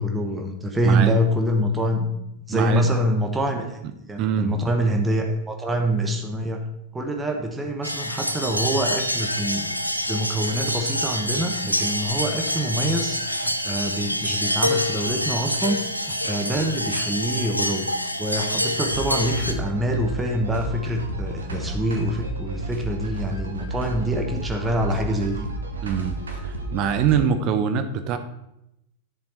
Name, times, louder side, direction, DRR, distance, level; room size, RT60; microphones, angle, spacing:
voice 1, 0.0-2.1 2.5-3.8 4.1-6.7 6.9-9.7 10.1-17.9 18.2-25.5, right 1 dB, 10° right, 3 dB, 1.3 m, -25 dB
voice 2, 0.8-1.2 2.5-2.9 4.2-4.6 25.8-28.2, right 8 dB, 40° right, 8 dB, 0.9 m, -24 dB
sound 1, 7.8-19.5, left 1 dB, 90° left, 0.7 m, -26 dB
sound 2, 18.8-27.2, right 1 dB, 70° right, 1.4 m, -32 dB
10.5 x 7.1 x 4.4 m, 0.81 s
figure-of-eight pair, 90°, 0 cm